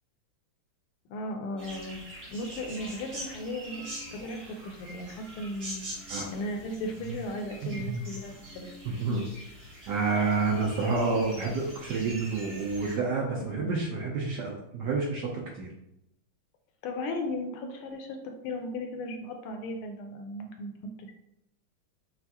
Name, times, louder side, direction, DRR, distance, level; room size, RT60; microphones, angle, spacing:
voice 1, 1.1-2.0 2.3-3.8 4.1-8.7 13.5-13.7 16.8-20.7 21.0-21.1, left 1 dB, 80° left, 4 dB, 1.5 m, -36 dB
sound 1, 1.6-13.0, right 1 dB, 40° right, 1.7 m, -44 dB
voice 2, 7.6-8.0 8.8-9.3 9.9-15.7, right 4 dB, 70° right, -2 dB, 1.0 m, -29 dB
5.7 x 2.5 x 2.8 m, 0.83 s
omnidirectional pair, 2.4 m